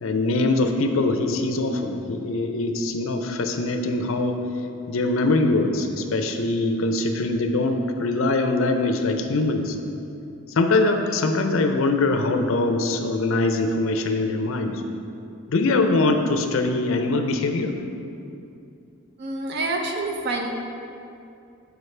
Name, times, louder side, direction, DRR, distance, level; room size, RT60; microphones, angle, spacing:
voice 1, 0.0-4.4 4.9-9.8 10.6-14.8 15.5-17.7, left 2 dB, 70° left, 6 dB, 0.5 m, -22 dB
voice 2, 19.2-20.5, right 2 dB, 50° right, 2 dB, 0.5 m, -27 dB
7.8 x 4.8 x 3.2 m, 2.6 s
head